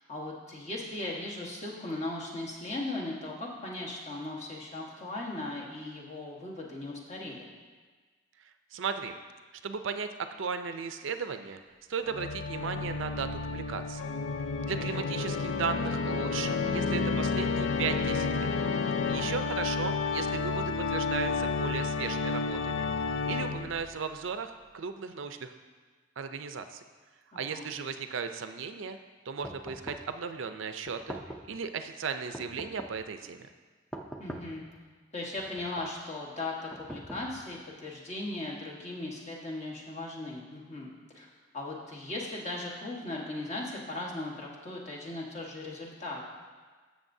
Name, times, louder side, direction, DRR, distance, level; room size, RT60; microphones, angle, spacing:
voice 1, 0.1-7.5 19.2-19.6 27.3-27.7 34.2-34.6 35.1-41.3 41.5-46.2, left 2 dB, 35° left, -3 dB, 1.4 m, -38 dB
voice 2, 8.7-9.2 9.6-10.1 10.4-11.6 11.9-14.0 14.6-18.5 19.1-22.9 23.2-25.5 26.2-26.8 27.4-29.0 29.3-31.2 31.5-33.5, right 6 dB, 70° right, 8 dB, 0.5 m, -36 dB
Organ, 12.1-23.9, left 4 dB, 65° left, 0.4 m, -31 dB
sound 1, 29.4-30.2 30.9-31.6 32.3-33.1 33.9-34.7 35.4-36.0 36.7-37.6, right 1 dB, 5° left, 0.5 m, -43 dB
15.0 x 6.4 x 2.7 m, 1.4 s
head